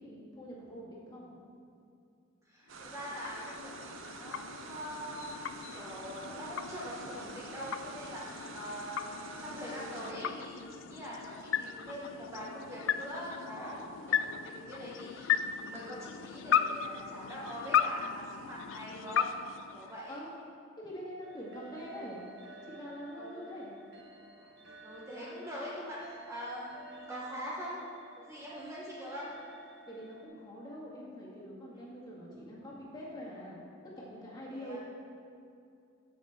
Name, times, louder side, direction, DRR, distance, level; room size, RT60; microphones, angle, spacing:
voice 1, 0.0-1.4 20.1-20.3 20.8-22.2 22.6-23.7 29.9-33.6 34.0-34.8, equal, 20° left, -6 dB, 2.2 m, -44 dB
voice 2, 2.4-19.3 19.7-20.2 21.5-21.6 23.1-23.3 24.4-24.5 24.8-27.8 28.2-29.3 31.7-31.9 34.5-34.8, equal, 15° right, -6 dB, 1.1 m, -43 dB
sound 1, 2.7-20.5, left 8 dB, 70° left, 0.3 m, -36 dB
sound 2, 2.7-10.1, right 4 dB, 90° right, 0.7 m, -47 dB
sound 3, 21.2-30.3, right 3 dB, 60° right, 1.1 m, -53 dB
14.5 x 6.3 x 3.7 m, 2.5 s
head